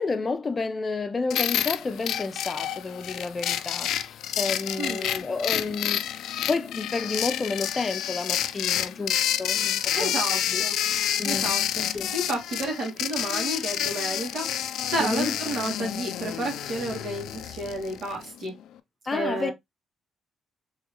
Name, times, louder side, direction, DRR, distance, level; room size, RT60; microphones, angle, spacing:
voice 1, 0.0-10.6 11.2-11.5 11.9-12.1 15.0-15.4 19.1-19.5, left 3 dB, 30° left, 0.6 m, -31 dB
sound 1, 1.3-18.3, left 11 dB, 80° left, 0.3 m, -29 dB
voice 2, 4.8-5.2 9.9-10.8 11.2-11.6 12.1-14.5 14.8-18.5 19.1-19.5, right 2 dB, 60° right, 1.9 m, -31 dB
3.8 x 3.1 x 2.8 m
cardioid pair, 90°, 0 cm